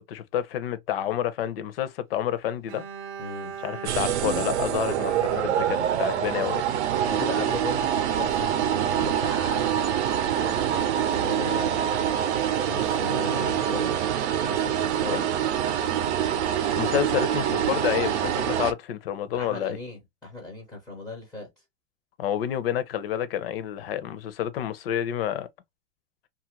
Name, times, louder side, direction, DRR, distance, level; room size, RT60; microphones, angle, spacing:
voice 1, 0.0-2.8 3.6-6.6 15.1-15.2 16.8-19.8 22.2-25.5, left 10 dB, 60° left, 0.6 m, -29 dB
Bowed string instrument, 2.7-6.7, right 6 dB, 45° right, 0.6 m, -39 dB
voice 2, 3.2-3.5 4.9-5.0 7.0-9.7 10.3-11.9 12.7-14.0 14.4-15.3 19.4-21.5, left 3 dB, ahead, 0.4 m, -37 dB
sound 1, 3.9-18.7, right 9 dB, 90° right, 0.6 m, -25 dB
2.7 x 2.5 x 2.8 m
supercardioid pair, 170°, 33 cm